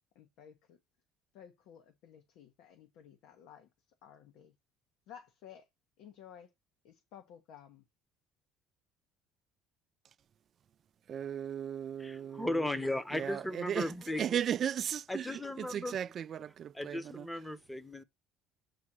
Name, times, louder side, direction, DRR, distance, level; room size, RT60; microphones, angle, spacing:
voice 1, 0.1-0.8 1.3-3.7 4.0-4.5 5.1-5.7 6.0-6.5 6.8-7.8, left 9 dB, 75° left, 1.1 m, -54 dB
voice 2, 11.1-12.6 13.1-13.9 14.2-17.3, right 9 dB, 45° right, 0.3 m, -36 dB
voice 3, 12.0-14.4 15.1-16.0 16.7-18.0, left 1 dB, 5° left, 0.8 m, -36 dB
8.2 x 2.8 x 6.0 m
cardioid pair, 120°, 0 cm